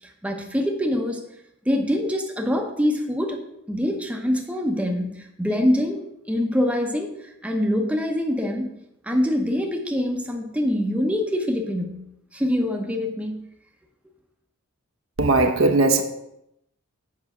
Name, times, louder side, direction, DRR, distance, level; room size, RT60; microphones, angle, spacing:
voice 1, 0.2-1.2 1.7-3.4 3.7-6.0 6.3-8.7 9.0-12.0 12.3-13.4, left 1 dB, 5° right, 0.8 m, -24 dB
voice 2, 15.2-16.0, right 2 dB, 70° right, 0.8 m, -18 dB
7.6 x 5.4 x 4.8 m
head